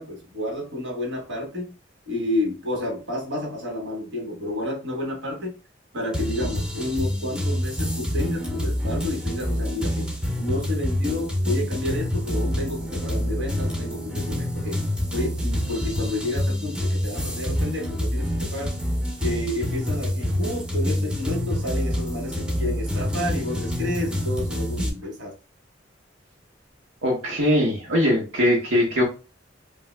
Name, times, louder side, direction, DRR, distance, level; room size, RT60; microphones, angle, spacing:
voice 1, 0.0-1.7 2.1-5.5 5.9-10.1 10.4-14.8 15.1-18.8 19.2-25.3, left 1 dB, 65° right, 0 dB, 1.1 m, -30 dB
sound 1, 6.1-24.9, equal, 5° right, 0.5 m, -27 dB
voice 2, 27.0-29.0, left 1 dB, 90° right, -3 dB, 0.8 m, -21 dB
2.7 x 2.1 x 3.2 m, 0.33 s
head